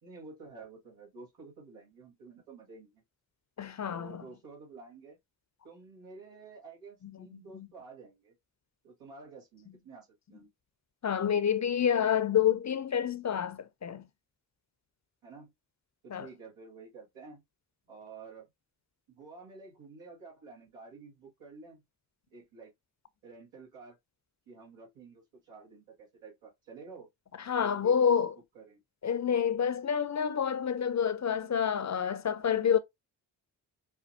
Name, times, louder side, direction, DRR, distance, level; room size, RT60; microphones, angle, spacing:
voice 1, 0.0-3.0 3.9-5.2 5.6-8.4 8.8-10.5 15.2-15.5 16.0-17.4 17.9-18.5 19.1-21.8 22.3-22.7 23.2-24.0 24.5-27.1 27.6-28.1 28.5-28.8, right 4 dB, 80° right, 2.0 m, -50 dB
voice 2, 3.6-4.2 11.0-14.0 16.1-16.3 27.5-28.3 29.0-32.8, left 8 dB, 35° left, 0.6 m, -28 dB
5.4 x 2.3 x 2.7 m
hypercardioid pair, 40°, 49 cm